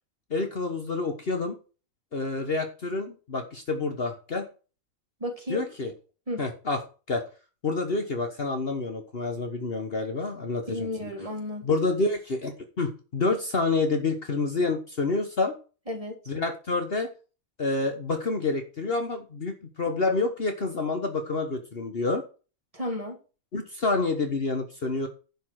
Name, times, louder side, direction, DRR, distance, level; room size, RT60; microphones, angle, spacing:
voice 1, 0.3-1.6 2.1-4.5 5.5-5.9 6.4-6.8 7.1-7.2 7.6-11.1 11.6-15.5 16.3-17.1 17.6-22.2 23.5-25.1, left 3 dB, 45° left, 5 dB, 1.4 m, -28 dB
voice 2, 5.2-5.6 6.3-6.4 10.7-11.7 15.9-16.2 22.7-23.2, left 1 dB, 25° right, 2 dB, 2.7 m, -33 dB
10.5 x 5.6 x 6.3 m, 0.35 s
omnidirectional pair, 1.5 m